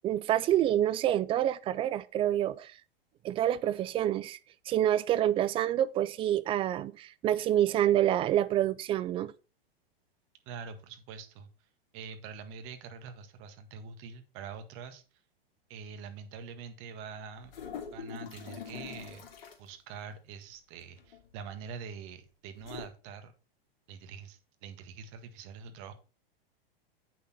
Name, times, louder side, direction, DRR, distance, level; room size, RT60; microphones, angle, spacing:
voice 1, 0.0-2.7 3.2-4.4 4.7-9.3, right 12 dB, 20° right, 0.3 m, -27 dB
voice 2, 10.4-11.5 11.9-15.0 15.7-17.5 17.9-19.3 19.6-23.3 23.9-25.9, right 6 dB, 45° right, 1.7 m, -45 dB
sound 1, 17.4-19.7 21.0-21.4 22.5-22.9, left 7 dB, 65° left, 2.7 m, -43 dB
8.3 x 6.2 x 4.2 m
hypercardioid pair, 120°, 31 cm